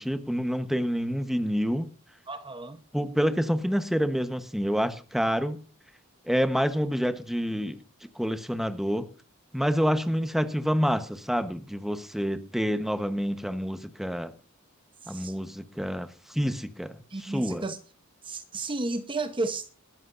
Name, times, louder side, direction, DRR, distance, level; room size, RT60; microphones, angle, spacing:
voice 1, 0.0-1.9 2.9-5.6 6.3-7.8 8.1-9.1 9.5-14.3 15.1-16.9 17.2-17.6, equal, ahead, 1.1 m, -27 dB
voice 2, 2.3-2.8 15.0-15.4 17.1-17.8 18.2-19.7, right 2 dB, 25° right, 0.9 m, -33 dB
20.0 x 13.5 x 2.6 m
head